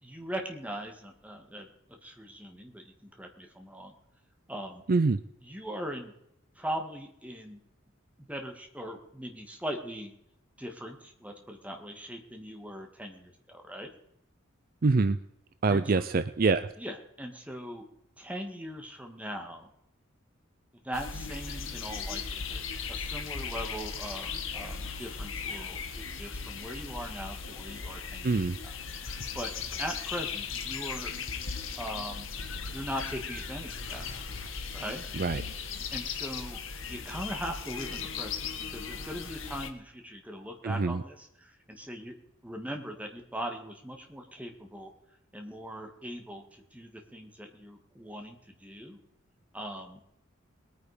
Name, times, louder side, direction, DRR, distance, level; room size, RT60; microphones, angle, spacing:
voice 1, 0.0-3.9 4.5-4.8 5.4-6.1 6.6-7.6 8.2-10.1 10.6-13.9 15.7-16.1 16.8-17.9 18.2-19.7 20.8-29.5 29.8-31.1 31.8-32.3 32.7-34.1 34.7-35.0 35.9-38.4 38.7-42.1 42.4-44.9 45.3-49.0 49.5-50.0, equal, 5° right, 3 dB, 2.0 m, -40 dB
voice 2, 14.8-15.2 15.6-16.7 28.2-28.5 35.2-35.4 40.8-40.9, right 3 dB, 45° right, 13 dB, 0.5 m, -24 dB
sound 1, 20.9-39.7, left 5 dB, 65° left, 1.7 m, -37 dB
20.5 x 9.5 x 5.1 m, 0.79 s
head